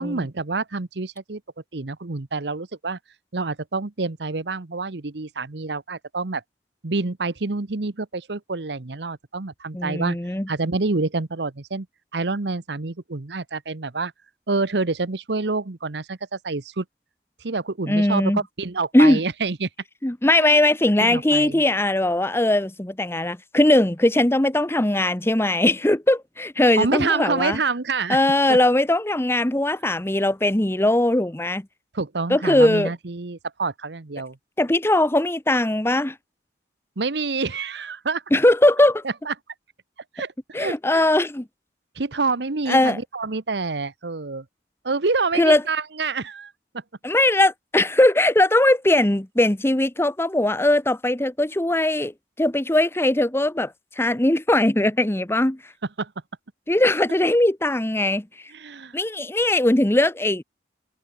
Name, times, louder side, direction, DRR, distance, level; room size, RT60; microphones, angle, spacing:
voice 1, 0.0-1.4 1.7-3.0 3.3-6.4 6.8-10.2 10.5-11.9 12.1-14.1 14.5-16.8 17.4-19.7 20.4-20.6 21.0-21.6 26.8-28.2 28.5-28.6 31.9-34.4 37.0-38.2 39.3-39.4 40.1-41.1 42.0-44.4 44.8-46.5 56.0-56.1 58.5-59.0, right 3 dB, 70° right, 1.0 m, -27 dB
voice 2, 9.7-10.5 17.9-18.4 18.9-19.2 20.0-27.6 28.1-31.6 32.3-32.9 34.6-36.2 38.3-39.0 40.5-41.4 42.7-43.0 45.3-45.6 47.0-52.1 52.4-55.6 56.7-58.3 58.9-60.4, left 1 dB, 15° left, 0.9 m, -20 dB
head